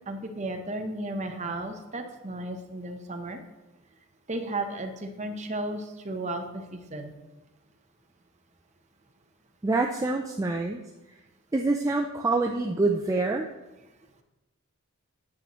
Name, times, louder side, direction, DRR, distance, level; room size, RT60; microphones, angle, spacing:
voice 1, 0.1-3.4 4.3-7.1, right 2 dB, 30° right, 5 dB, 0.8 m, -34 dB
voice 2, 9.6-10.8 11.5-13.5, right 3 dB, 15° right, 2 dB, 0.3 m, -26 dB
9.7 x 7.5 x 3.0 m, 1.1 s
head